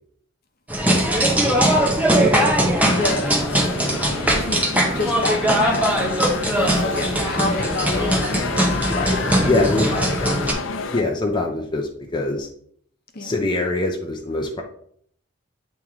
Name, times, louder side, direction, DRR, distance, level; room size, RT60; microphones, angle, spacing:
sound 1, 0.7-10.5, right 1 dB, 10° right, 1.0 m, -20 dB
voice 1, 2.2-3.4 3.9-4.1 4.3-8.5 9.9-10.8 13.1-13.5, left 2 dB, 50° left, 5 dB, 0.9 m, -29 dB
sound 2, 2.9-11.0, left 4 dB, 90° left, 0.5 m, -30 dB
voice 2, 8.9-9.9 10.9-12.5 13.2-14.6, left 2 dB, 25° left, 1 dB, 0.6 m, -24 dB
8.6 x 3.1 x 3.6 m, 0.64 s
head